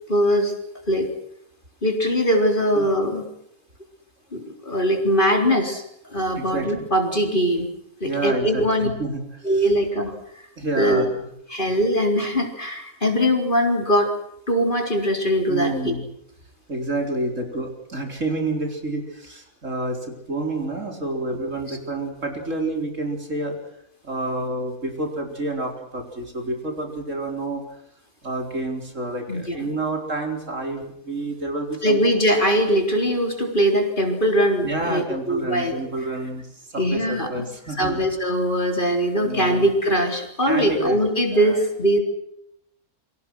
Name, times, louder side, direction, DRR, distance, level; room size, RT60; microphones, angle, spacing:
voice 1, 0.1-0.5 0.9-1.1 1.8-3.2 4.3-5.8 6.1-7.7 8.0-8.9 9.4-10.1 10.8-11.0 11.5-14.1 14.5-15.9 29.3-29.7 31.8-35.8 36.8-37.3 37.8-42.0, equal, 35° left, 3 dB, 4.0 m, -21 dB
voice 2, 6.4-6.9 8.0-9.7 10.6-11.3 15.5-16.1 16.7-23.6 24.0-27.8 28.2-32.0 34.6-36.5 36.7-38.1 39.2-39.7 40.5-41.0 41.3-41.6, right 2 dB, 60° right, 3 dB, 4.6 m, -29 dB
28.5 x 24.5 x 6.2 m, 0.75 s
omnidirectional pair, 1.5 m